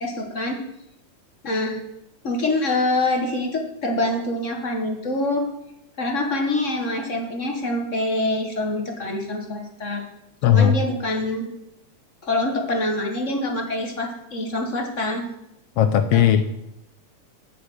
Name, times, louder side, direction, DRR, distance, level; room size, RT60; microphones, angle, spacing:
voice 1, 0.0-0.6 1.4-1.8 2.2-5.4 6.0-10.0 10.4-11.5 12.2-15.3 16.1-16.2, left 2 dB, 40° left, 2 dB, 1.0 m, -25 dB
voice 2, 10.4-10.8 15.8-16.6, left 9 dB, 80° left, 9 dB, 1.3 m, -17 dB
8.7 x 6.9 x 7.9 m, 0.85 s
omnidirectional pair, 3.4 m